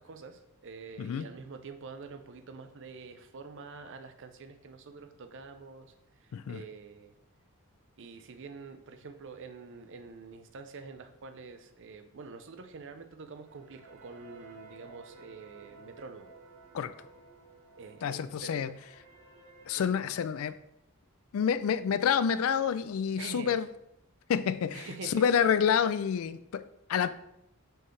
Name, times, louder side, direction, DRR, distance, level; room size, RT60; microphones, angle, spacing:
voice 1, 0.0-5.9 6.2-7.1 8.0-16.3 17.8-18.7 19.8-20.1 23.2-23.6 24.7-25.2, right 4 dB, 60° right, 8 dB, 0.6 m, -46 dB
sound 1, 13.4-19.8, right 3 dB, 75° right, 1.1 m, -54 dB
voice 2, 18.0-18.7 19.7-20.6 21.3-23.7 24.3-26.6 26.9-27.1, left 7 dB, 65° left, 13 dB, 0.3 m, -28 dB
6.4 x 4.6 x 3.2 m, 0.81 s
head